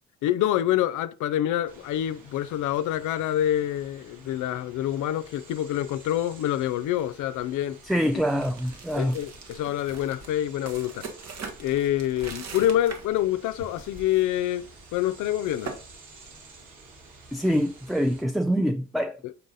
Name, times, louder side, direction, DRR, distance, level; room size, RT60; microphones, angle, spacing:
voice 1, 0.2-7.8 8.9-11.0 11.6-14.6 14.9-15.7, left 12 dB, 80° left, 0.5 m, -26 dB
sound 1, 1.6-18.2, right 3 dB, 75° right, 3.2 m, -51 dB
voice 2, 7.8-9.2 17.3-19.2, equal, ahead, 0.4 m, -25 dB
sound 2, 8.2-13.3 13.6-14.3 14.5-14.7 15.2-15.8, right 4 dB, 60° right, 1.4 m, -41 dB
6.8 x 3.9 x 4.0 m
cardioid pair, 90°, 30 cm